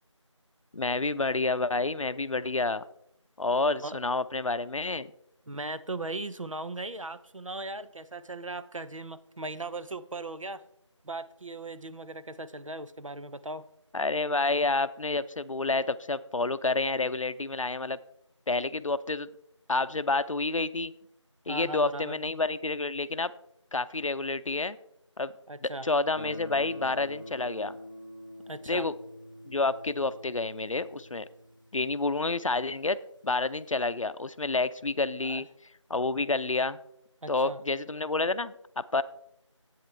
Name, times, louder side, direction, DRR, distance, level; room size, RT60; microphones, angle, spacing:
voice 1, 0.7-2.8 3.4-5.1 13.9-18.0 18.5-19.3 19.7-20.9 21.5-23.3 23.7-24.8 25.2-25.3 25.6-27.7 28.7-28.9 29.5-31.3 31.7-33.0 33.2-35.5 35.9-36.8 37.3-39.0, left 3 dB, 85° left, 15 dB, 0.5 m, -29 dB
voice 2, 5.5-10.6 11.0-13.7 21.5-22.2 25.5-25.9 28.5-28.9 35.2-35.4 37.2-37.6, right 2 dB, 85° right, 12 dB, 0.7 m, -38 dB
Guitar, 26.2-32.9, equal, 40° left, 0.6 m, -46 dB
10.5 x 8.5 x 3.2 m, 0.75 s
figure-of-eight pair, 175°, 16 cm